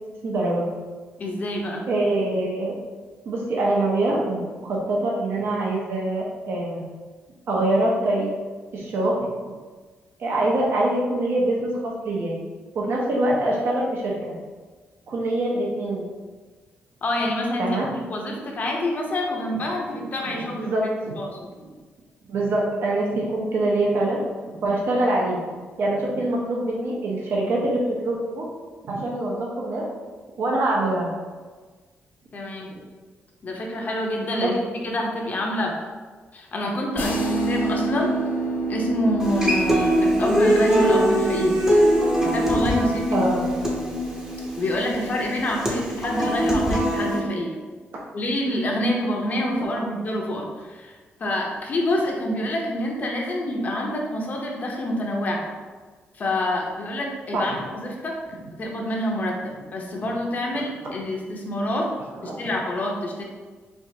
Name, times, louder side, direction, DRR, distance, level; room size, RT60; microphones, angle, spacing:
voice 1, 0.2-0.7 1.9-2.7 3.3-6.8 7.5-8.3 8.7-9.2 10.2-12.3 12.7-14.3 15.1-16.0 17.6-17.9 20.5-21.1 22.3-24.2 24.5-25.4 25.8-28.4 28.8-29.8 30.4-31.1 34.3-34.5 43.1-43.4 57.3-57.6 62.2-62.3, right 2 dB, 60° right, -3 dB, 0.7 m, -24 dB
voice 2, 1.2-1.9 17.0-20.7 21.1-21.7 32.3-32.7 33.4-35.8 36.3-38.1 38.7-41.6 42.2-43.2 44.6-47.5 48.1-55.5 56.1-58.2 58.5-61.9 62.2-63.2, left 1 dB, 40° left, 0 dB, 0.7 m, -27 dB
sound 1, 37.0-46.6, right 2 dB, 65° left, 1.1 m, -30 dB
Human voice / Acoustic guitar, 39.2-47.2, equal, 15° right, 0.7 m, -22 dB
4.4 x 2.4 x 2.8 m, 1.4 s
cardioid pair, 120°, 4 cm